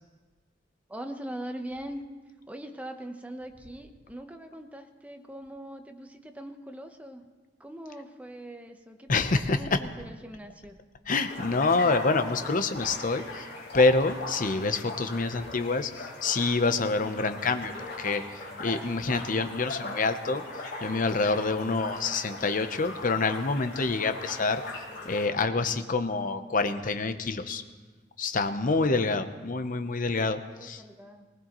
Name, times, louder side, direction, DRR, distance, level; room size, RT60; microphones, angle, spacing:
voice 1, 0.9-2.0 2.5-7.3 7.6-10.8 30.5-31.3, right 1 dB, 10° right, 5 dB, 0.9 m, -41 dB
voice 2, 9.1-9.6 11.1-13.5 13.7-20.4 20.8-24.6 25.0-27.6 28.2-30.8, left 3 dB, 45° left, 9 dB, 0.8 m, -27 dB
sound 1, 11.3-25.3, left 2 dB, 65° left, 4.3 m, -39 dB
20.0 x 18.5 x 3.0 m, 1.4 s
head